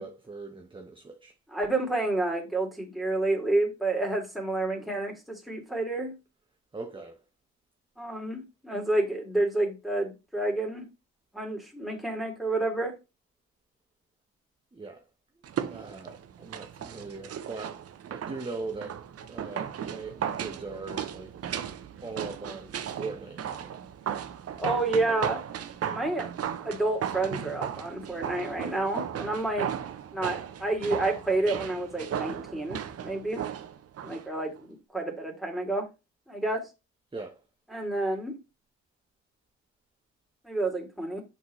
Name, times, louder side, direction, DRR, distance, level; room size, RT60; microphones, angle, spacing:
voice 1, 0.0-1.3 6.7-7.2 14.7-15.0 15.7-17.8 18.1-19.0 19.3-21.3 22.0-23.7 37.1-37.4, right 3 dB, 15° right, 1.0 m, -40 dB
voice 2, 1.5-6.1 8.0-10.9 11.3-12.9 24.6-25.4 25.9-26.3 26.6-29.7 30.1-33.4 34.0-35.9 36.3-36.7 37.7-38.4 40.4-41.2, right 2 dB, ahead, 2.6 m, -29 dB
sound 1, 15.4-34.3 34.6-34.7, right 9 dB, 50° right, 0.7 m, -36 dB
5.9 x 5.6 x 3.1 m
supercardioid pair, 60°, 30 cm